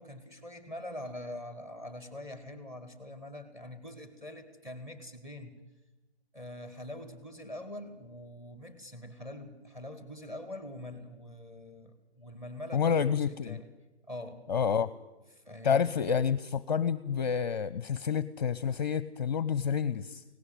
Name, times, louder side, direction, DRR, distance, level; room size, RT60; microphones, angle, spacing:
voice 1, 0.0-5.6 6.3-13.7 14.1-14.4 15.3-16.0, left 1 dB, 10° right, 10 dB, 1.9 m, -44 dB
voice 2, 12.7-13.6 14.5-14.9 15.6-20.2, left 7 dB, 40° left, 18 dB, 0.6 m, -29 dB
18.0 x 16.5 x 9.1 m, 1.1 s
figure-of-eight pair, 145°, 33 cm